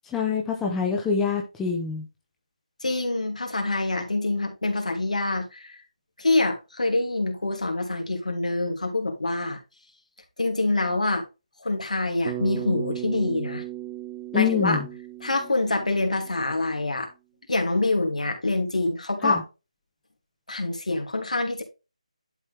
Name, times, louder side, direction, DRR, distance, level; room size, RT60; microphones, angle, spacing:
voice 1, 0.1-2.0 14.3-14.9 19.2-19.4, left 6 dB, 5° left, 1.0 m, -25 dB
voice 2, 2.8-5.8 6.2-9.6 10.4-11.2 11.6-13.6 14.3-14.8 15.2-17.1 17.5-19.4 20.5-21.6, left 2 dB, 80° left, 2.7 m, -25 dB
Bass guitar, 12.3-16.6, right 14 dB, 15° right, 0.7 m, -36 dB
11.0 x 4.3 x 3.3 m
figure-of-eight pair, 160°, 4 cm